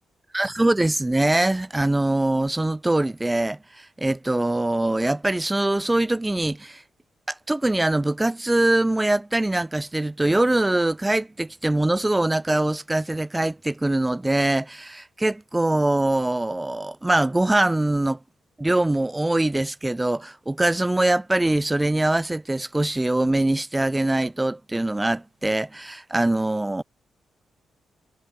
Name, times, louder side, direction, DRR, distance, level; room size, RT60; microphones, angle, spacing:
voice 1, 0.3-6.8 7.5-18.2 18.6-26.8, right 1 dB, 15° right, 2.0 m, -23 dB
supercardioid pair, 50°, 0 cm